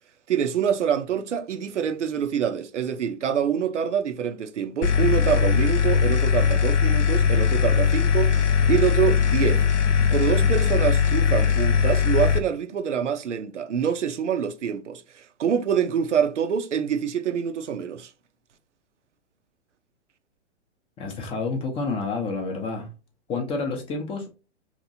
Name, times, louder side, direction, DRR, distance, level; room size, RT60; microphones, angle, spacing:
voice 1, 0.3-9.6 10.1-18.1, right 8 dB, 90° right, 0.5 m, -26 dB
sound 1, 4.8-12.4, left 7 dB, 85° left, 0.6 m, -20 dB
voice 2, 21.0-22.9 23.3-24.3, left 3 dB, 15° left, 0.5 m, -29 dB
2.9 x 2.6 x 2.5 m
hypercardioid pair, 120°, 35 cm